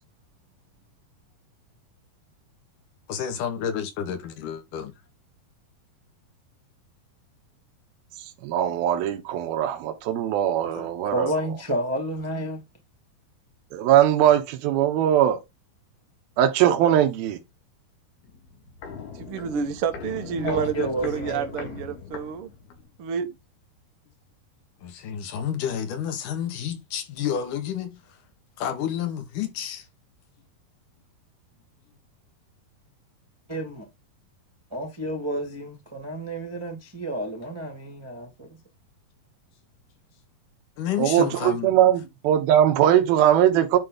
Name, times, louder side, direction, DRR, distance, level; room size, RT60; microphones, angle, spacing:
voice 1, 3.1-4.9 10.8-10.9 24.8-28.0 28.6-29.9 40.8-41.7, left 9 dB, 60° left, 3.4 m, -30 dB
voice 2, 8.4-11.3 13.7-15.4 16.4-17.4 41.0-43.8, right 11 dB, 80° right, 3.0 m, -20 dB
voice 3, 11.1-12.6 20.4-21.7 33.5-33.9 34.7-38.6, right 1 dB, 10° right, 1.3 m, -30 dB
Walk footsteps, 18.2-22.9 23.2-23.3, left 5 dB, 80° left, 4.1 m, -39 dB
voice 4, 19.1-22.5 23.0-23.4, right 7 dB, 60° right, 1.4 m, -29 dB
10.5 x 4.5 x 3.9 m
omnidirectional pair, 4.3 m